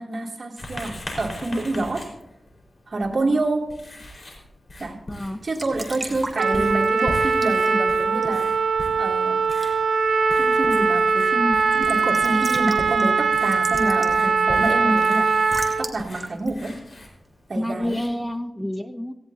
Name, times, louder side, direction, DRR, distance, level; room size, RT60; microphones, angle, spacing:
voice 1, 0.0-2.1 2.9-3.7 4.8-5.0 5.4-8.5 9.0-9.4 10.4-15.3 15.8-16.8 17.5-18.0, right 2 dB, 55° right, -2 dB, 2.7 m, -27 dB
Writing, 0.6-18.4, left 1 dB, 55° left, 4.5 m, -40 dB
voice 2, 3.1-3.4 5.1-5.4 17.5-19.1, left 1 dB, 10° left, 8 dB, 0.6 m, -29 dB
Raindrop / Drip / Trickle dribble, 5.3-17.8, right 1 dB, 20° right, 2.4 m, -40 dB
Trumpet, 6.4-15.9, right 5 dB, 85° right, 0.9 m, -21 dB
17.5 x 16.5 x 2.8 m, 0.87 s
wide cardioid pair, 75°, 0 cm